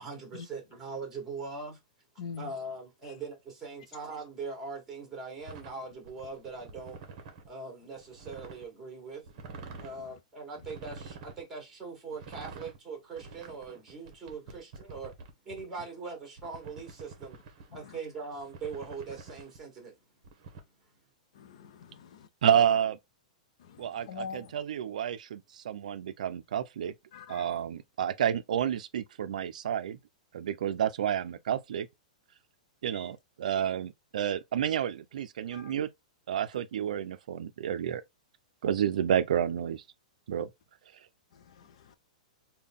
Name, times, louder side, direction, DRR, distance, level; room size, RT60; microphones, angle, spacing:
voice 1, 0.0-1.8 2.4-7.0 7.5-9.2 9.8-15.1 15.4-17.4 17.7-20.0 20.8-21.0, right 4 dB, 10° right, 1.4 m, -41 dB
voice 2, 2.2-2.5 9.8-9.9 17.8-18.0 21.3-22.3 23.6-24.5 27.1-27.6 32.9-33.1 35.5-35.7 41.3-42.0, left 6 dB, 55° left, 0.4 m, -45 dB
sound 1, 5.4-7.5 8.0-8.7 9.2-10.0 10.6-11.4 12.1-12.8 13.2-15.6 16.4-17.8 18.3-19.6 20.2-20.6, right 4 dB, 35° right, 0.9 m, -47 dB
voice 3, 22.4-23.0 23.8-26.9 27.3-30.0 30.3-31.9 32.8-35.9 36.3-38.0 38.6-39.8 40.3-40.5, right 9 dB, 75° right, 0.4 m, -30 dB
3.7 x 2.2 x 3.5 m
supercardioid pair, 170°, 4 cm